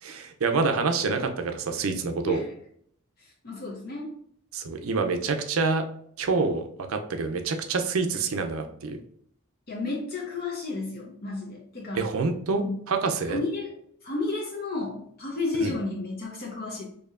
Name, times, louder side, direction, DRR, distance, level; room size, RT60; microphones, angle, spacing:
voice 1, 0.0-2.4 4.5-5.8 6.2-9.0 11.9-13.4 15.6-15.7, right 4 dB, 75° right, 6 dB, 0.5 m, -27 dB
voice 2, 3.2-4.1 9.7-12.1 12.5-12.7 13.3-13.7 14.0-16.8, left 2 dB, 45° left, -1 dB, 0.7 m, -32 dB
4.6 x 2.7 x 2.5 m, 0.65 s
head